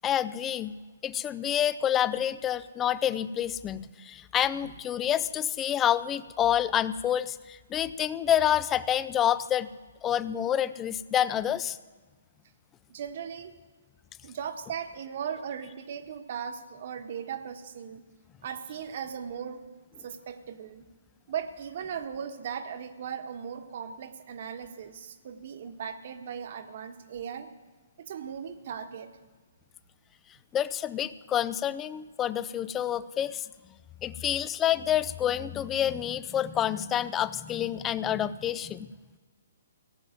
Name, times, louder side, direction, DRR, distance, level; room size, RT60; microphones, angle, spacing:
voice 1, 0.0-0.8 1.0-9.7 10.0-11.8 30.5-33.5 34.0-38.9, left 10 dB, 20° left, 16 dB, 0.5 m, -28 dB
voice 2, 12.9-13.5 14.2-18.0 18.4-19.6 20.0-20.9 21.3-27.5 28.0-29.1, right 7 dB, 55° right, 9 dB, 1.4 m, -38 dB
17.0 x 7.6 x 9.1 m, 1.3 s
hypercardioid pair, 140°, 0 cm